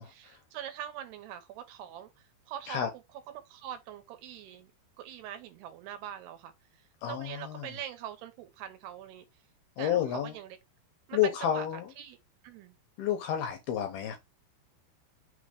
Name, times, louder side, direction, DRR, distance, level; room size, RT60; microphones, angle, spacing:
voice 1, 0.0-2.9 3.3-4.7 5.0-9.3 9.8-10.6 11.1-12.2 12.4-12.8, right 10 dB, 75° right, 2.6 m, -43 dB
voice 2, 7.0-7.7 9.8-10.3 11.1-11.9 13.0-14.2, left 10 dB, 75° left, 2.4 m, -30 dB
6.4 x 3.0 x 5.0 m
omnidirectional pair, 5.1 m